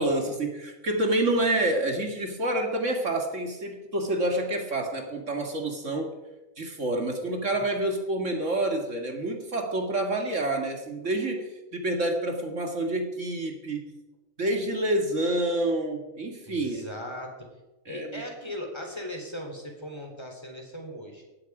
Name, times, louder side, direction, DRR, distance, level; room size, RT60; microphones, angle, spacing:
voice 1, 0.0-6.2 6.6-13.8 14.4-16.9 17.9-18.2, right 1 dB, 60° right, 3 dB, 2.3 m, -28 dB
voice 2, 16.5-17.5 17.9-21.2, equal, 20° left, 2 dB, 3.8 m, -39 dB
18.5 x 15.5 x 4.9 m, 1.1 s
omnidirectional pair, 1.5 m